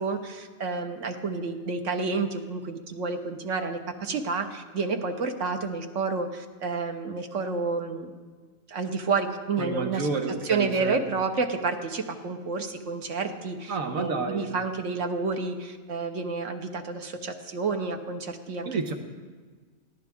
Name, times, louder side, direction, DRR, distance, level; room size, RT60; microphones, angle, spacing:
voice 1, 0.0-8.1 8.7-10.1 10.4-18.9, right 4 dB, 70° right, 6 dB, 1.4 m, -30 dB
voice 2, 9.6-11.0 13.7-14.5 18.6-18.9, right 4 dB, 85° right, 5 dB, 1.6 m, -30 dB
20.5 x 15.0 x 3.6 m, 1.5 s
omnidirectional pair, 1.4 m